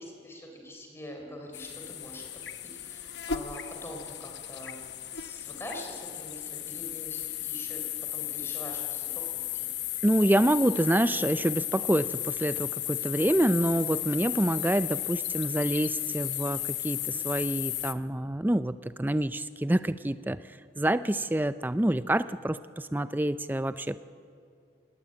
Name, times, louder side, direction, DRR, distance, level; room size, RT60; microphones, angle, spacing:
voice 1, 0.0-2.3 2.6-9.2 9.5-9.7, equal, 15° left, 1 dB, 3.9 m, -44 dB
sound 1, 1.5-17.9, left 12 dB, 80° left, 0.9 m, -35 dB
voice 2, 10.0-20.4 20.8-24.0, right 1 dB, 10° right, 13 dB, 0.5 m, -27 dB
20.0 x 20.0 x 8.9 m, 2.4 s
head